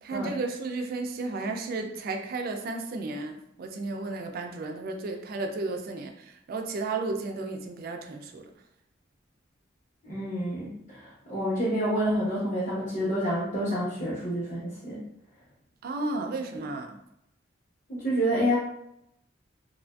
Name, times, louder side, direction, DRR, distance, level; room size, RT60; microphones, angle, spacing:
voice 1, 0.0-8.5 15.8-17.0, right 3 dB, 50° right, 4 dB, 0.3 m, -33 dB
voice 2, 10.0-15.0 17.9-18.6, equal, 40° left, -10 dB, 0.8 m, -28 dB
2.9 x 2.5 x 2.2 m, 0.78 s
head